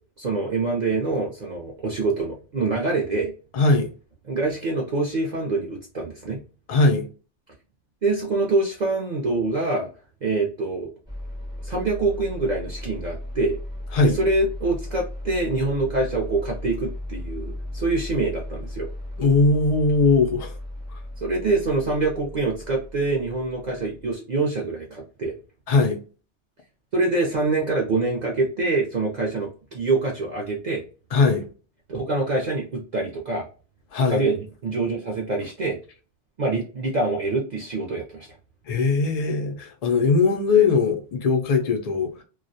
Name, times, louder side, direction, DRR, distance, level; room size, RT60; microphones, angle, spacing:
voice 1, 0.2-3.3 4.3-6.4 8.0-9.9 10.2-10.9 11.6-13.6 14.0-18.9 21.2-25.3 26.9-30.8 31.9-33.5 34.1-35.8 36.4-38.3, right 3 dB, 50° right, 0.5 m, -25 dB
voice 2, 3.5-3.9 6.7-7.1 13.9-14.2 19.2-20.5 20.9-21.0 25.7-26.0 31.1-31.5 33.9-34.2 38.7-42.2, left 4 dB, 75° left, 0.3 m, -20 dB
sound 1, 11.1-24.1, left 1 dB, 5° right, 0.6 m, -36 dB
2.3 x 2.0 x 2.6 m
omnidirectional pair, 1.2 m